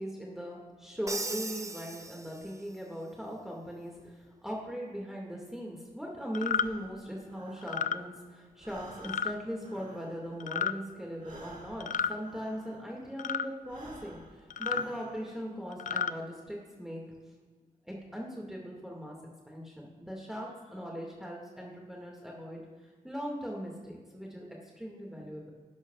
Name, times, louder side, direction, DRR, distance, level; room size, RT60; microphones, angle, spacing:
voice 1, 0.0-17.0 17.8-19.2 19.5-22.6 23.0-24.4 24.8-25.5, equal, 5° right, -2 dB, 2.0 m, -39 dB
Crash cymbal, 1.1-2.8, right 2 dB, 20° right, 0.7 m, -39 dB
sound 1, 6.3-6.7 7.6-8.0 9.0-9.3 10.4-10.7 11.8-12.2 13.2-13.5 14.5-14.9 15.7-16.1, left 7 dB, 55° left, 0.4 m, -31 dB
Breathing, 6.4-8.2 8.5-13.1 13.6-15.5, right 2 dB, 55° right, 1.9 m, -52 dB
11.5 x 10.5 x 2.4 m, 1.5 s
cardioid pair, 60°, 16 cm